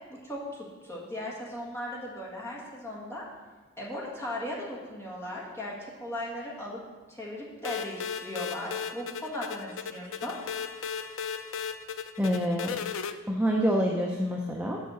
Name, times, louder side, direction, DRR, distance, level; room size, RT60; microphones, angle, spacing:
voice 1, 0.8-3.2 3.8-6.8 7.1-10.3, left 1 dB, 10° left, -5 dB, 1.6 m, -37 dB
sound 1, 7.6-13.1, left 7 dB, 70° left, 0.4 m, -36 dB
voice 2, 12.2-12.8 13.3-14.8, equal, 5° right, -2 dB, 0.5 m, -27 dB
6.4 x 5.7 x 6.8 m, 1.4 s
head